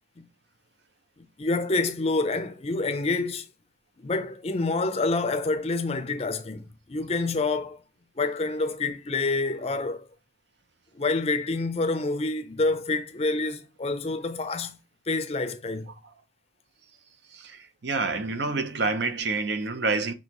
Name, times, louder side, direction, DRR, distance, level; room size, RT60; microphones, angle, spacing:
voice 1, 1.2-3.5 4.0-7.8 8.2-10.1 10.9-14.8 15.1-15.9, left 3 dB, 30° left, 0.5 m, -27 dB
voice 2, 17.3-20.1, right 3 dB, 60° right, 0.6 m, -28 dB
6.3 x 2.8 x 2.9 m
head